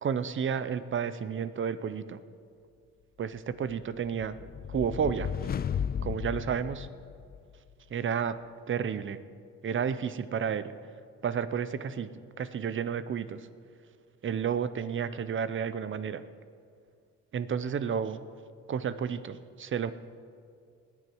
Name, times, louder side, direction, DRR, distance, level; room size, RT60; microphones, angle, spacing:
voice 1, 0.0-2.2 3.2-4.4 4.7-5.3 6.0-6.9 7.9-8.4 8.7-9.2 9.6-10.7 11.2-12.1 12.4-13.5 14.2-16.2 17.3-18.2 18.7-19.9, right 7 dB, 40° right, 14 dB, 0.7 m, -31 dB
sound 1, 3.7-7.5, left 8 dB, 30° left, 0.4 m, -35 dB
20.0 x 9.8 x 4.6 m, 2.3 s
cardioid pair, 90°, 30 cm